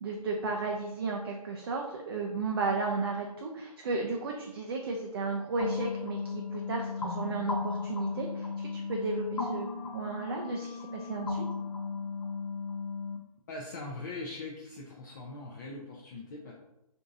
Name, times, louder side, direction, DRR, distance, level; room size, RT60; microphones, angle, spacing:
voice 1, 0.0-9.7 9.9-11.4, right 3 dB, 40° right, 1 dB, 0.4 m, -34 dB
sound 1, 5.6-13.2, left 4 dB, 70° left, 0.8 m, -36 dB
voice 2, 13.5-16.5, left 2 dB, 30° left, -3 dB, 0.4 m, -41 dB
3.6 x 2.6 x 2.5 m, 0.89 s
figure-of-eight pair, 145°, 20 cm